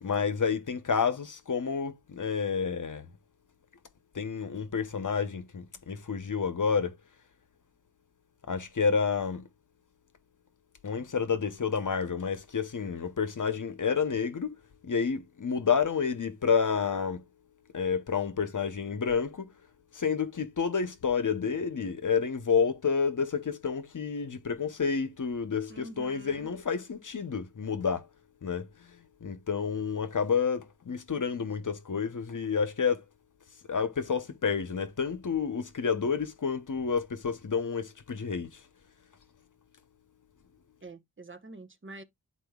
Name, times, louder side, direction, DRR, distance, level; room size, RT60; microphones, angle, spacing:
voice 1, 0.0-3.1 4.1-7.0 8.5-9.5 10.8-14.6 14.8-17.2 17.7-19.5 19.9-28.1 28.4-33.0 33.7-38.6, left 6 dB, 55° left, 0.9 m, -29 dB
voice 2, 25.7-26.5 40.8-42.0, right 2 dB, 30° right, 1.0 m, -46 dB
11.5 x 4.3 x 2.3 m
wide cardioid pair, 90°, 38 cm